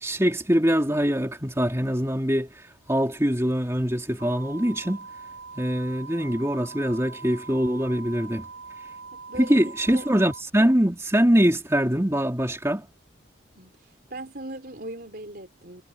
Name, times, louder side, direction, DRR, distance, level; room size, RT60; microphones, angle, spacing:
voice 1, 0.0-2.5 2.9-5.1 5.6-8.4 9.3-12.9, equal, 15° right, 2.8 m, -23 dB
sound 1, 4.2-10.4, right 4 dB, 80° right, 4.6 m, -42 dB
voice 2, 9.1-10.1 13.6-13.7 14.1-15.8, right 1 dB, 50° right, 4.1 m, -38 dB
head